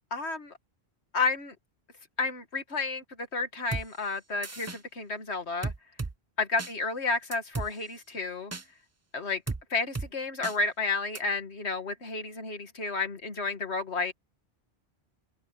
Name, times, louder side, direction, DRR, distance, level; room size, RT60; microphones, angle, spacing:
voice 1, 0.1-0.5 1.1-1.5 2.2-5.7 6.4-8.5 9.1-9.4 9.7-14.1, left 3 dB, 85° left, 2.2 m, -31 dB
sound 1, 3.7-3.9 4.4-4.8 5.6-6.1 6.6-6.7 7.3-7.7 8.5-8.6 9.5-9.6 10.0-10.1 10.4-10.6 11.2-11.3, right 3 dB, 20° right, 0.5 m, -34 dB
open air
omnidirectional pair, 1.1 m